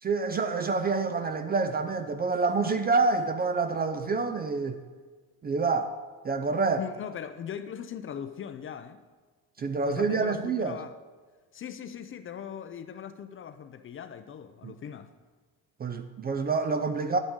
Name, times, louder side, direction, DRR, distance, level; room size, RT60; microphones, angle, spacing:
voice 1, 0.0-4.8 5.4-5.9 6.2-6.8 9.6-10.7 14.6-14.7 15.8-17.2, right 4 dB, 25° right, 9 dB, 0.4 m, -27 dB
voice 2, 6.8-9.0 9.8-11.0 11.5-15.1, left 8 dB, 35° left, 10 dB, 0.5 m, -40 dB
10.0 x 8.8 x 3.7 m, 1.4 s
cardioid pair, 115°, 39 cm